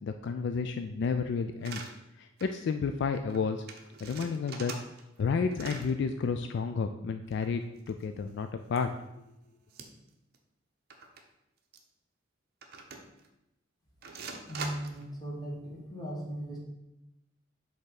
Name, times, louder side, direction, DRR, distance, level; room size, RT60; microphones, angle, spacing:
voice 1, 0.0-1.9 2.2-3.6 4.0-4.7 5.2-8.9, left 5 dB, 60° left, 8 dB, 0.3 m, -31 dB
sound 1, 1.6-1.9 2.4-2.6 2.8-2.9 3.1-3.4 3.7-5.2 5.5-5.9 7.2-8.3 8.7-8.8 9.7-10.1 10.3-10.4 10.9-11.2 11.7-11.8 12.6-13.3 14.0-15.0, right 4 dB, 55° right, 0.7 m, -43 dB
voice 2, 14.5-16.6, right 1 dB, 20° left, -5 dB, 1.9 m, -38 dB
5.4 x 3.6 x 5.8 m, 0.90 s
head